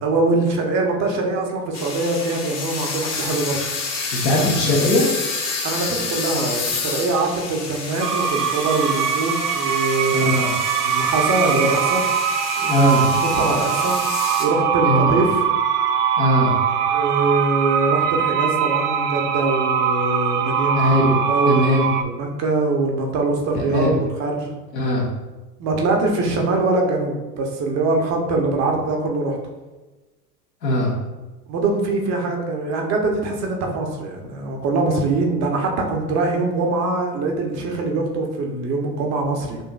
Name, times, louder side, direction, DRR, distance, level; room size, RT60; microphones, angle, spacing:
voice 1, 0.0-3.6 5.6-10.3 10.8-12.0 12.6-12.8 13.4-14.0 14.4-15.4 16.9-20.9 21.3-24.5 25.6-29.4 31.5-39.6, right 3 dB, 35° right, 1 dB, 0.8 m, -23 dB
sound 1, 1.7-14.5, left 4 dB, 30° left, 1.0 m, -29 dB
voice 2, 4.1-5.1 10.1-10.5 12.7-13.1 14.8-15.1 16.2-16.5 20.7-21.2 21.5-21.9 23.5-24.0 24.7-25.1 30.6-30.9, left 1 dB, 80° left, -2 dB, 1.3 m, -19 dB
sound 2, 8.0-22.0, right 7 dB, 70° right, 0.6 m, -22 dB
6.4 x 2.6 x 2.4 m, 1.2 s
figure-of-eight pair, 85°, 49 cm